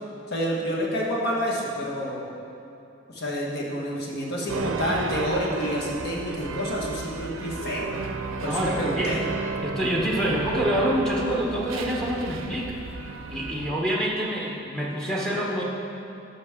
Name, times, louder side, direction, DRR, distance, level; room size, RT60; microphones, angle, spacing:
voice 1, 0.3-2.2 3.1-7.9 8.4-9.2, equal, 55° left, -3 dB, 1.5 m, -28 dB
sound 1, 4.5-13.7, right 4 dB, 75° right, 0.5 m, -33 dB
voice 2, 8.4-9.3 9.6-12.8 13.3-15.6, equal, 5° left, -3 dB, 1.0 m, -26 dB
13.0 x 6.0 x 3.7 m, 2.8 s
head